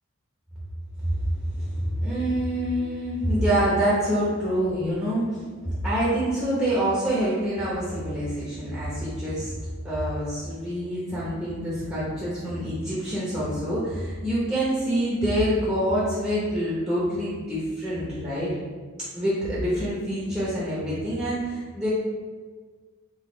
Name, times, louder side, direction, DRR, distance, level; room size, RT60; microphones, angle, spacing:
voice 1, 1.0-18.5 19.1-21.9, equal, 15° right, -9 dB, 0.9 m, -26 dB
3.9 x 2.6 x 3.9 m, 1.5 s
head